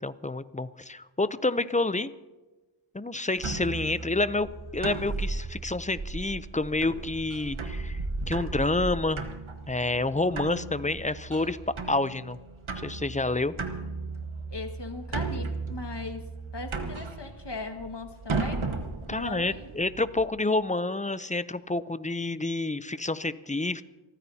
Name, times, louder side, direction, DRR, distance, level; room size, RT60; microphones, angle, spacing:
voice 1, 0.0-2.1 2.9-8.0 8.3-9.3 9.7-11.6 11.9-12.4 12.8-13.5 19.1-23.8, left 2 dB, 15° left, 14 dB, 0.5 m, -28 dB
sound 1, 3.4-20.3, right 3 dB, 75° right, 1.3 m, -35 dB
voice 2, 14.5-16.2 16.5-18.7 19.1-19.7, left 3 dB, 55° left, 5 dB, 1.8 m, -38 dB
28.5 x 14.0 x 2.8 m, 1.2 s
wide cardioid pair, 55°, 48 cm